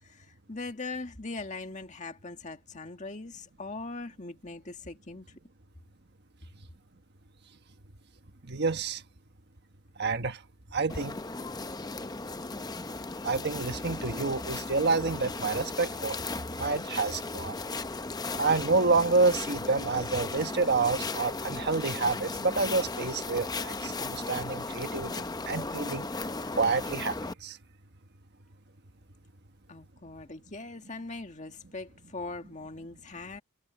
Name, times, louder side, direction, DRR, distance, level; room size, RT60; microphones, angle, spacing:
voice 1, 0.0-5.4 29.7-33.4, left 3 dB, 35° left, 1.9 m, -41 dB
voice 2, 8.5-9.0 10.0-10.4 10.7-11.2 13.2-16.2 16.6-17.5 18.4-26.1 26.6-27.2 27.4-27.6, right 4 dB, 50° right, 1.4 m, -28 dB
sound 1, 10.9-27.3, left 3 dB, 20° left, 0.6 m, -36 dB
head